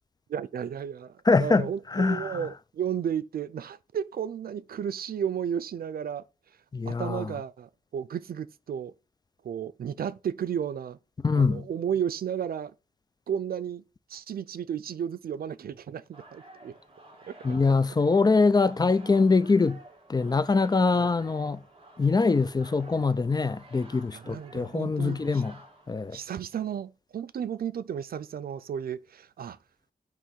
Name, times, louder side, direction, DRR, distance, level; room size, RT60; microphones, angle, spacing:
voice 1, 0.3-6.2 6.8-8.9 9.4-11.0 11.3-12.7 13.3-13.8 14.1-16.7 17.3-17.4 21.0-21.1 24.1-25.4 26.1-29.6, right 8 dB, 85° right, 0.5 m, -33 dB
voice 2, 1.3-2.4 6.7-7.3 11.2-11.7 17.4-19.8 20.1-21.6 22.0-25.5 25.9-26.2, left 4 dB, 25° left, 0.4 m, -23 dB
sound 1, 16.1-26.6, right 2 dB, 40° right, 2.1 m, -52 dB
9.1 x 3.1 x 6.4 m
wide cardioid pair, 125°, 15 cm